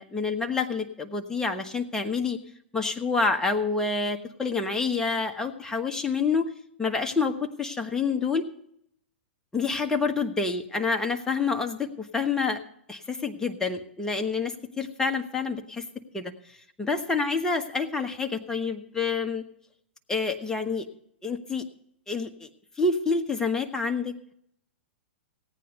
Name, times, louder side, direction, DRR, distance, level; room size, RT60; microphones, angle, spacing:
voice 1, 0.0-2.4 2.7-6.5 6.8-8.5 9.5-12.6 12.9-15.8 16.1-16.3 16.8-19.4 20.1-20.9 21.2-21.6 22.1-22.5 22.8-24.3, left 4 dB, 10° left, 5 dB, 1.3 m, -28 dB
16.5 x 9.3 x 5.3 m, 0.71 s
hypercardioid pair, 110°, 6 cm